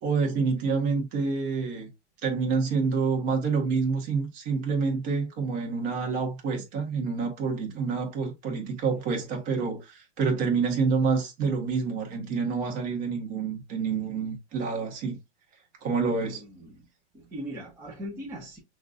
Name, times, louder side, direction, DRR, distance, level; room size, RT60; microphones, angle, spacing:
voice 1, 0.0-1.9 2.2-15.2 15.8-16.4, right 5 dB, 30° right, 1.5 m, -27 dB
voice 2, 16.2-16.9 17.1-18.6, equal, 5° right, 0.7 m, -40 dB
5.9 x 2.5 x 2.6 m
supercardioid pair, 165°, 35 cm